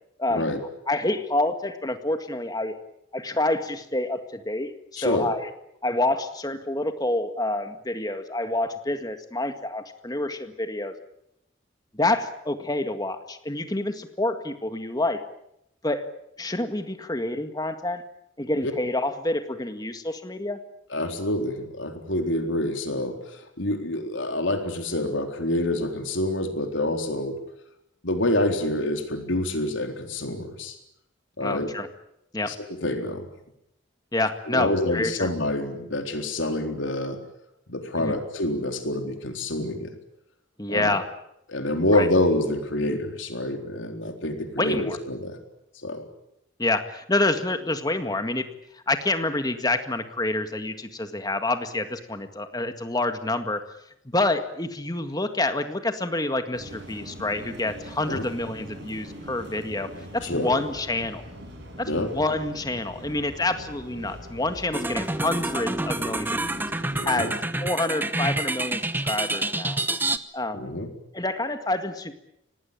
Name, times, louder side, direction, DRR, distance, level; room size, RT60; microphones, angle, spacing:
voice 1, 0.3-0.6 5.0-5.3 18.6-18.7 20.9-27.4 28.0-30.8 31.4-31.7 32.4-33.3 34.5-37.2 37.7-39.9 40.7-41.0 41.5-45.4 45.8-46.1 58.1-58.3 60.2-60.5 61.9-62.1 66.9-67.3 70.5-70.9, left 1 dB, 70° left, 5 dB, 3.9 m, -27 dB
voice 2, 0.9-2.7 3.1-5.4 5.8-10.9 11.9-15.2 15.8-16.0 16.4-18.0 18.4-20.6 31.4-31.9 32.3-32.5 34.1-35.3 38.0-38.2 40.6-41.0 41.9-42.1 44.6-45.0 46.6-48.4 48.9-53.6 54.1-59.9 60.1-61.2 61.8-66.7 67.0-67.3 67.6-69.8 70.3-70.7 71.1-72.1, left 2 dB, 20° left, 8 dB, 1.9 m, -27 dB
sound 1, 56.5-67.1, equal, 55° right, 7.3 m, -42 dB
sound 2, 64.7-70.2, right 2 dB, 10° right, 0.9 m, -28 dB
25.5 x 19.0 x 8.9 m, 0.80 s
head